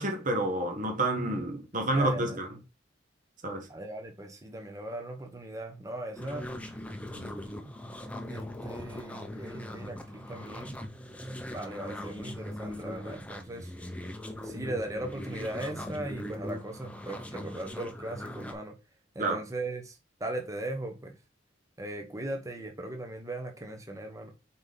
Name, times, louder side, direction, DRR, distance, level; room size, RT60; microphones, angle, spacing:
voice 1, 0.0-2.5 3.4-3.7 19.2-19.4, right 2 dB, 45° right, 1.4 m, -29 dB
voice 2, 0.9-1.4 1.9-2.4 3.7-6.5 7.1-7.4 8.3-10.8 11.5-13.7 14.4-18.7 19.1-21.2 21.8-24.3, right 1 dB, 15° right, 1.1 m, -38 dB
sound 1, 6.2-18.5, left 1 dB, 5° left, 0.8 m, -40 dB
5.7 x 4.1 x 3.9 m
head